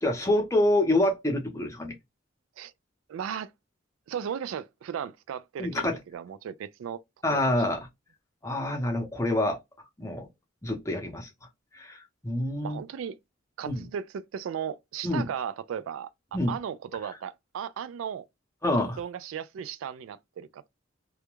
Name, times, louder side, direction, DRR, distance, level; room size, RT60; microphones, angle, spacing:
voice 1, 0.0-1.9 5.6-6.0 7.2-7.8 8.4-9.6 10.0-10.3 10.6-11.3 11.7-12.0 12.2-12.8 13.7-13.8 15.0-15.3 16.3-16.5 18.6-19.0, left 1 dB, 15° left, 0.7 m, -26 dB
voice 2, 3.1-3.5 4.1-7.0 7.3-7.6 12.6-13.2 13.6-16.1 16.5-18.2 19.0-20.7, right 8 dB, 85° right, 0.3 m, -36 dB
2.3 x 2.1 x 2.9 m
head